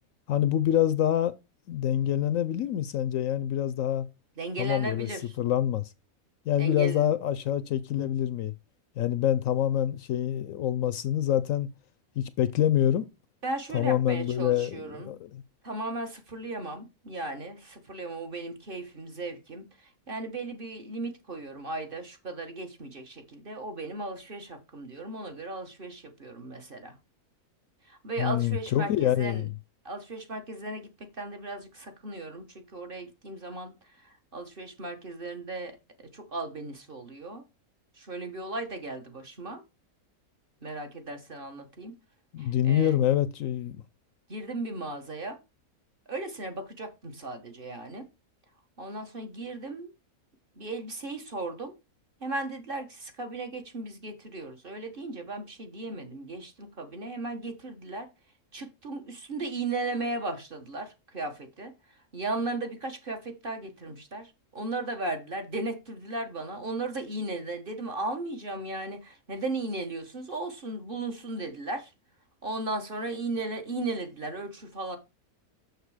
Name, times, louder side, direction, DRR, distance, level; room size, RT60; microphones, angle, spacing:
voice 1, 0.3-1.3 1.7-4.1 4.6-5.1 5.4-5.9 6.5-8.5 9.0-11.7 12.2-13.1 13.7-15.4 28.2-29.5 42.3-43.8, left 11 dB, 70° left, 0.9 m, -26 dB
voice 2, 4.4-5.2 6.6-7.0 13.4-15.1 15.6-19.6 20.1-26.9 27.9-29.4 29.8-30.9 31.2-32.4 32.7-33.7 34.3-35.8 36.1-37.4 38.0-39.6 40.6-41.9 42.4-43.0 44.3-45.4 46.1-48.0 48.8-49.9 50.6-51.7 52.2-58.1 58.5-61.7 62.1-71.9 72.4-75.0, right 2 dB, 40° right, 1.4 m, -36 dB
6.6 x 6.5 x 4.9 m
omnidirectional pair, 1.5 m